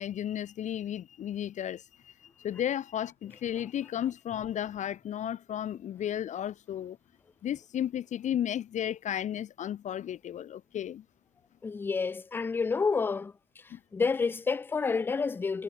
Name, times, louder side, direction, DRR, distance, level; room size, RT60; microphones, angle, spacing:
voice 1, 0.0-7.0 7.4-11.0 13.7-13.8, left 10 dB, 35° left, 1.1 m, -34 dB
voice 2, 11.6-13.3 13.9-15.6, left 4 dB, 10° left, 0.3 m, -29 dB
cardioid pair, 165°, 20 cm